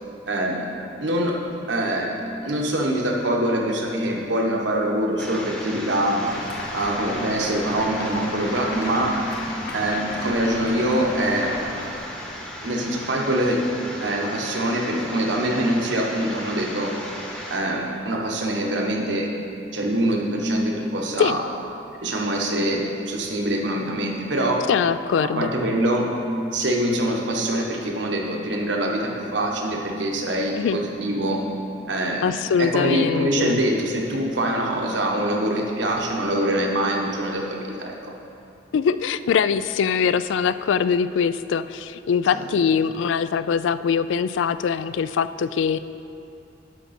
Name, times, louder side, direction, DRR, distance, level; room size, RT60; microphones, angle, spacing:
voice 1, 0.3-0.7 1.0-1.4 1.7-6.2 6.7-9.1 9.7-11.5 12.6-13.6 14.0-17.0 17.5-19.3 19.7-21.4 22.0-24.6 25.2-26.1 26.5-31.4 31.9-32.3 32.6-38.1, right 1 dB, 75° right, 0 dB, 1.2 m, -24 dB
sound 1, 5.2-17.6, equal, 5° left, 0.9 m, -36 dB
sound 2, 6.2-12.4, left 1 dB, 55° left, 1.5 m, -35 dB
voice 2, 24.7-25.5 30.6-30.8 32.2-33.6 38.7-45.8, left 7 dB, 85° left, 14 dB, 0.3 m, -22 dB
12.0 x 5.9 x 4.3 m, 2.6 s
head